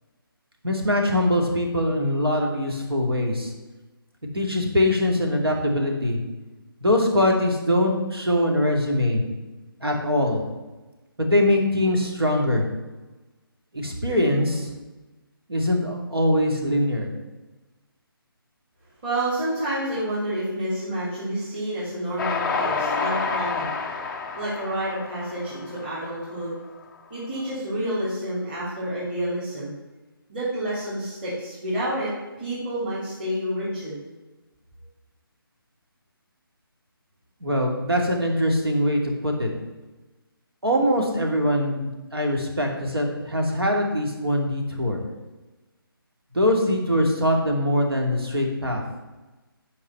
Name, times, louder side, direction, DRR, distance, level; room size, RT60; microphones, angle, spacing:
voice 1, 0.6-3.5 4.3-6.2 6.8-9.2 9.8-10.4 11.2-12.6 13.7-14.7 15.5-17.1 37.4-39.5 40.6-45.0 46.3-48.8, left 1 dB, 80° right, 1 dB, 2.6 m, -22 dB
voice 2, 19.0-23.7 24.4-26.6 27.1-29.8 30.3-34.0, right 1 dB, 25° right, -10 dB, 2.8 m, -29 dB
Train, 22.2-26.6, left 5 dB, 5° left, 0.4 m, -29 dB
9.7 x 4.8 x 7.0 m, 1.1 s
figure-of-eight pair, 150°, 12 cm